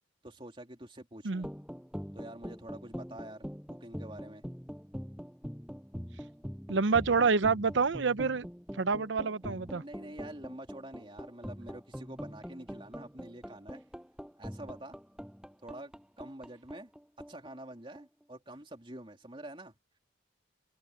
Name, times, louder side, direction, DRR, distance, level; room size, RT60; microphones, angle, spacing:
voice 1, 0.2-1.5 2.1-3.5 3.8-4.4 9.8-13.8 14.4-15.0 15.6-16.9 17.3-19.7, right 1 dB, 25° right, 3.0 m, -47 dB
sound 1, 1.3-18.2, equal, 5° right, 7.8 m, -44 dB
voice 2, 6.7-8.5 8.7-9.8, right 4 dB, 75° right, 0.7 m, -27 dB
head